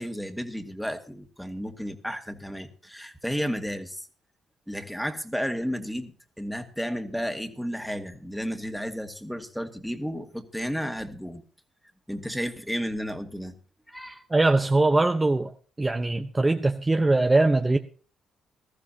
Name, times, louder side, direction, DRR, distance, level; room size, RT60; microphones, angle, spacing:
voice 1, 0.0-4.1 4.7-11.4 12.1-13.5 13.9-14.2, equal, ahead, 2.1 m, -33 dB
voice 2, 14.3-15.5 15.8-17.8, right 2 dB, 20° right, 0.9 m, -21 dB
19.5 x 14.5 x 2.9 m
hypercardioid pair, 50°, 0 cm